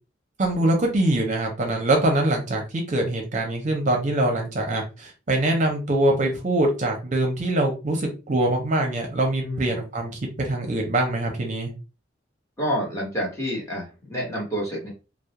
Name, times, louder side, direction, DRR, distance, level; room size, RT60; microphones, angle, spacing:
voice 1, 0.4-11.7, right 1 dB, 40° right, 2 dB, 0.6 m, -23 dB
voice 2, 9.4-9.8 12.6-14.9, equal, 15° left, -3 dB, 1.0 m, -28 dB
2.3 x 2.0 x 2.8 m, 0.30 s
head